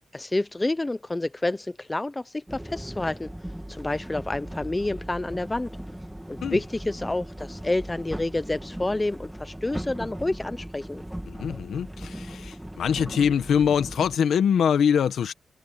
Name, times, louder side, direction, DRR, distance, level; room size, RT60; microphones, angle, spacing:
voice 1, 0.1-3.3 3.7-5.7 6.3-11.0, left 2 dB, 15° left, 0.5 m, -29 dB
sound 1, 2.5-14.2, right 1 dB, 5° right, 1.4 m, -38 dB
voice 2, 11.3-15.3, left 7 dB, 90° left, 1.5 m, -23 dB
wide cardioid pair, 150°, 0 cm